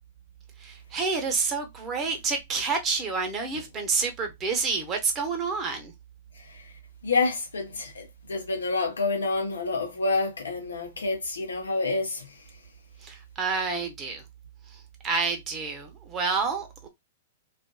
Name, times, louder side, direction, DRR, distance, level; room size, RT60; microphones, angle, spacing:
voice 1, 0.6-5.9 13.0-14.2 15.0-16.9, right 4 dB, 25° right, 0.8 m, -28 dB
voice 2, 6.3-12.7, left 3 dB, 85° left, 0.9 m, -29 dB
2.4 x 2.4 x 2.2 m
hypercardioid pair, 115°, 0 cm